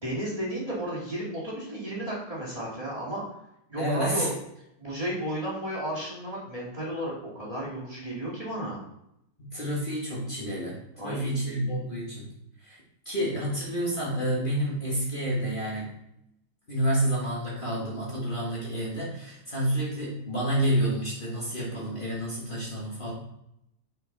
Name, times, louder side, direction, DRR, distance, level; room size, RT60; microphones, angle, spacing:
voice 1, 0.0-3.2 3.7-4.3 4.8-8.8 11.0-11.9, right 1 dB, 20° right, -6 dB, 2.3 m, -33 dB
voice 2, 3.8-4.3 9.4-12.3 12.6-12.8 13.0-16.0 16.7-23.1, right 1 dB, 30° left, -5 dB, 1.8 m, -29 dB
6.3 x 5.3 x 4.0 m, 0.80 s
omnidirectional pair, 1.7 m